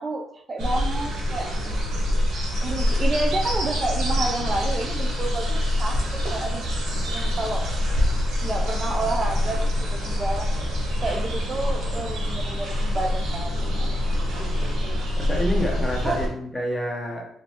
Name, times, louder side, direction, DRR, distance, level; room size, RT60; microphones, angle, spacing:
voice 1, 0.0-1.5 2.6-6.0 6.3-6.6 7.0-7.7 8.4-10.5 11.0-13.5 13.8-13.9 14.8-15.0 16.0-16.2, right 2 dB, 35° right, 1 dB, 0.5 m, -30 dB
sound 1, 0.6-16.3, left 1 dB, 70° right, 1.2 m, -25 dB
voice 2, 15.2-17.3, equal, 15° left, -1 dB, 1.0 m, -28 dB
3.1 x 3.0 x 2.9 m, 0.69 s
cardioid pair, 90°, 0 cm